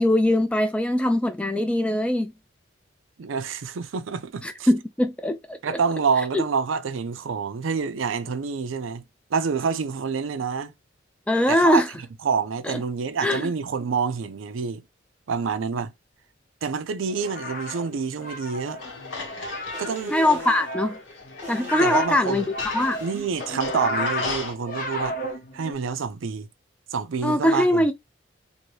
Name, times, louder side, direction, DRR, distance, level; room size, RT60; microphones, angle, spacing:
voice 1, 0.0-2.3 4.4-5.8 11.3-11.9 12.7-12.8 13.2-13.5 20.1-20.9 21.5-22.4 22.7-23.0 27.2-27.9, left 1 dB, 5° left, 0.3 m, -22 dB
voice 2, 3.2-4.7 5.6-9.0 9.3-10.7 11.5-11.8 12.2-14.8 15.3-15.9 16.6-18.8 19.8-20.2 21.8-22.4 23.0-25.2 25.5-26.5 26.9-27.9, right 5 dB, 80° right, 0.5 m, -27 dB
sound 1, 17.0-25.7, left 1 dB, 45° left, 0.7 m, -32 dB
sound 2, 18.8-24.5, left 3 dB, 75° left, 1.0 m, -37 dB
sound 3, 19.7-20.7 21.4-22.2 22.4-23.2, equal, 10° right, 0.7 m, -39 dB
2.7 x 2.6 x 3.1 m
head